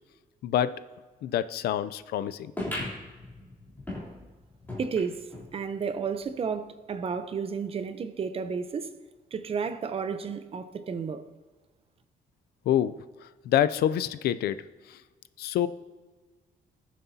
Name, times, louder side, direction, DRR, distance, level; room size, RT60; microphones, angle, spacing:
voice 1, 0.4-0.7 1.2-2.5 12.7-12.9 13.5-14.6 14.9-15.0 15.4-15.7, left 11 dB, 85° left, 0.5 m, -26 dB
sound 1, 2.6-5.5 6.0-6.1 6.3-6.4 7.1-7.2, left 1 dB, 10° left, 3.3 m, -38 dB
voice 2, 4.8-9.0 9.3-11.2, right 6 dB, 35° right, 0.7 m, -32 dB
19.0 x 7.5 x 2.8 m
cardioid pair, 145°, 16 cm